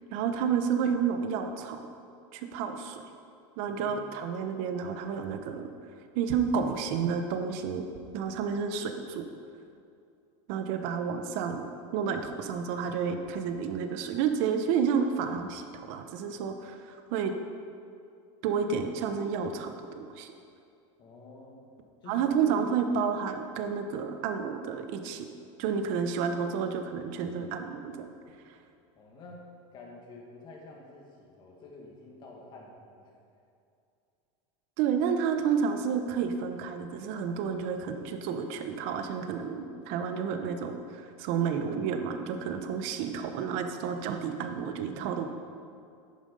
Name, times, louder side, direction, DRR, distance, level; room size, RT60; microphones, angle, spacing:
voice 1, 0.1-1.9 2.3-3.0 3.6-5.7 6.1-7.9 8.1-9.2 10.5-17.3 18.4-20.3 22.1-25.3 25.6-28.1 34.8-45.3, right 6 dB, 50° right, 7 dB, 1.0 m, -30 dB
voice 2, 3.7-4.0 21.0-21.6 22.0-22.7 24.5-24.6 29.0-33.1, left 2 dB, 30° left, -1 dB, 2.0 m, -48 dB
10.0 x 9.5 x 5.4 m, 2.5 s
supercardioid pair, 170°, 15 cm